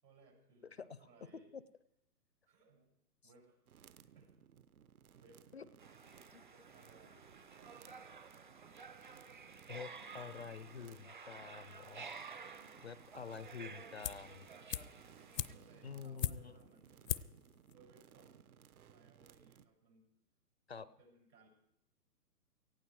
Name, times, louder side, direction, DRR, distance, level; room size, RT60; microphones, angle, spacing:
voice 1, 0.0-1.5 2.5-2.9 3.2-3.6 4.0-4.4 5.2-5.5 6.4-8.1 12.3-13.0 15.1-17.4 17.7-18.3 18.8-20.1 20.8-21.5, right 3 dB, 80° right, 0 dB, 7.5 m, -65 dB
sound 1, 3.7-19.7, right 8 dB, 60° right, 1.0 m, -62 dB
sound 2, 5.8-15.5, right 5 dB, 30° right, 0.5 m, -53 dB
voice 2, 9.7-12.1 12.8-14.5 15.8-16.5 20.7-20.9, left 6 dB, 45° left, 16 dB, 0.5 m, -48 dB
sound 3, 14.0-14.4 14.7-16.7 17.1-17.4 17.7-17.8, left 10 dB, 80° left, 0.7 m, -39 dB
18.0 x 15.0 x 4.7 m, 0.80 s
hypercardioid pair, 160°, 48 cm